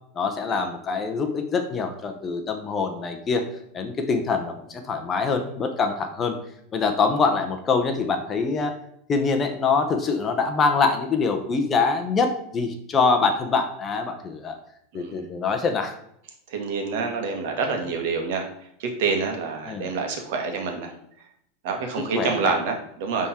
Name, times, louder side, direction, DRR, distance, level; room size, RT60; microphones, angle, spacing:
voice 1, 0.2-3.5 3.7-6.4 6.7-8.7 9.1-14.6 14.9-15.9 19.6-19.9 22.0-22.5, left 4 dB, 20° left, 5 dB, 0.8 m, -24 dB
voice 2, 16.5-18.5 18.8-20.9 21.6-23.3, right 4 dB, 60° right, 3 dB, 1.6 m, -27 dB
10.0 x 3.7 x 4.2 m, 0.72 s
supercardioid pair, 160°, 0 cm